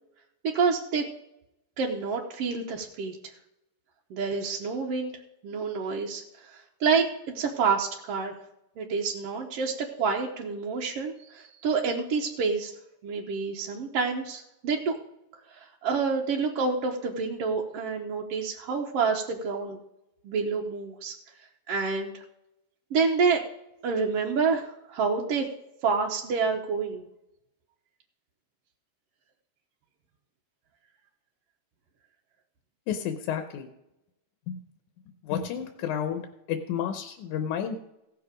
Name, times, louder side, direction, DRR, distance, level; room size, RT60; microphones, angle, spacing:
voice 1, 0.5-1.1 1.8-3.2 4.1-5.1 5.4-7.1 7.3-8.3 8.8-12.7 13.0-14.9 15.5-19.8 20.2-21.1 21.7-22.1 22.9-23.4 23.8-25.5 25.8-27.0, right 5 dB, 65° right, 0 dB, 1.7 m, -28 dB
voice 2, 32.9-33.7 34.5-34.6 35.2-36.2 36.5-37.8, left 8 dB, 85° left, 6 dB, 2.3 m, -31 dB
16.5 x 6.8 x 5.0 m, 0.87 s
omnidirectional pair, 3.4 m